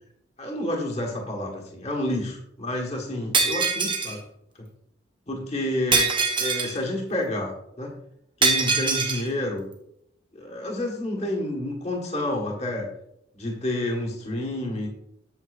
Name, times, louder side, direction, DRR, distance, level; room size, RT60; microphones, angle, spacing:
voice 1, 0.4-4.2 4.6-4.7 5.3-6.1 6.4-8.0 8.4-9.7 10.3-12.9 13.3-14.9, left 1 dB, 35° left, -1 dB, 1.4 m, -29 dB
Shatter, 3.3-4.2 5.9-6.8 8.4-9.2, right 4 dB, 25° right, 0.8 m, -23 dB
8.3 x 7.1 x 2.5 m, 0.77 s
head